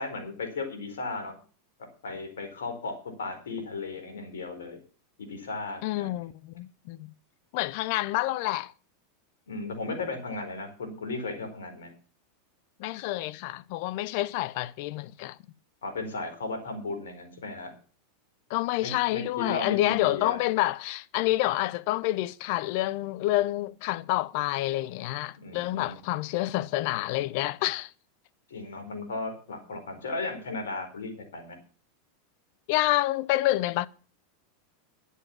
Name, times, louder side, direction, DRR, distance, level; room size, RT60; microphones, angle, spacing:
voice 1, 0.0-1.3 2.0-4.8 5.2-6.1 9.5-11.9 15.8-17.7 18.8-20.4 21.5-21.6 25.4-26.0 28.5-31.6, left 3 dB, 80° left, 4.4 m, -35 dB
voice 2, 5.8-7.1 7.5-8.7 12.8-15.4 18.5-27.9 32.7-33.9, left 17 dB, 60° left, 0.7 m, -28 dB
11.0 x 8.3 x 7.3 m
hypercardioid pair, 95°, 0 cm